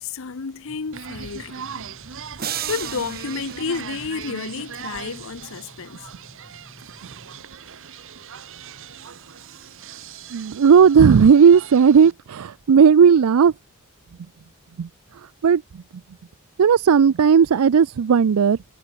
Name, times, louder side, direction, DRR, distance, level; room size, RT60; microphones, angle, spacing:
voice 1, 0.0-2.0 2.7-6.1, left 5 dB, 65° left, 0.8 m, -31 dB
sound 1, 0.6-7.5, equal, 15° left, 3.7 m, -51 dB
sound 2, 0.9-12.1, right 7 dB, 65° right, 1.1 m, -39 dB
sound 3, 2.4-4.7, right 10 dB, 45° right, 2.3 m, -34 dB
voice 2, 10.3-13.5 14.8-15.8 16.6-18.6, right 6 dB, 80° right, 0.4 m, -15 dB
head